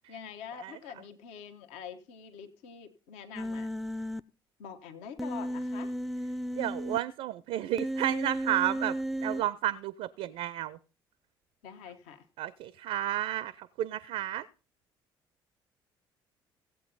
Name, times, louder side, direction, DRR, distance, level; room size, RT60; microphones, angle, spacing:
voice 1, 0.1-3.7 4.0-4.1 4.6-5.9 11.6-12.3, left 7 dB, 65° left, 1.1 m, -45 dB
Human voice, 3.4-4.2 5.2-7.0 7.8-9.4, equal, ahead, 0.5 m, -34 dB
voice 2, 6.6-8.9 9.2-10.8 12.4-14.5, right 13 dB, 55° right, 0.5 m, -32 dB
16.5 x 8.0 x 3.9 m
figure-of-eight pair, 50°, 12 cm